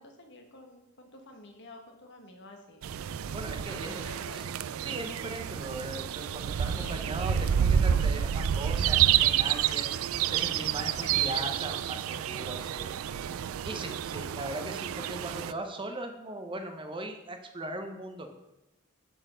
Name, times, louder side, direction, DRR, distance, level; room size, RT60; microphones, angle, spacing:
voice 1, 0.0-2.8 3.6-4.5 6.7-7.1 10.7-11.5 12.1-12.5 13.8-14.1, left 2 dB, 60° left, 3 dB, 1.2 m, -49 dB
sound 1, 2.8-15.5, right 9 dB, 85° right, 0.3 m, -29 dB
voice 2, 3.3-4.0 4.3-4.4 4.8-12.9 13.6-18.3, right 1 dB, 25° right, 5 dB, 0.8 m, -39 dB
7.3 x 4.3 x 6.8 m, 0.94 s
head